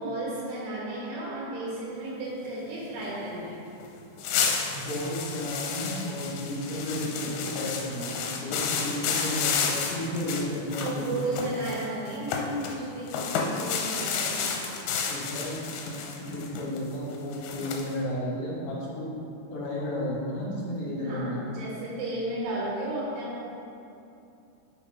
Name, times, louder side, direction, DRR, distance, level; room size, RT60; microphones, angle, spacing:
voice 1, 0.0-3.6 10.7-14.7 21.0-23.6, right 1 dB, 85° right, -8 dB, 3.6 m, -34 dB
sound 1, 3.8-3.9 4.2-12.8 13.1-17.9, left 6 dB, 85° left, 2.9 m, -31 dB
voice 2, 4.7-11.5 15.1-19.1 19.5-21.4, left 1 dB, 65° left, -5 dB, 3.5 m, -33 dB
7.1 x 6.3 x 5.1 m, 2.7 s
omnidirectional pair, 4.8 m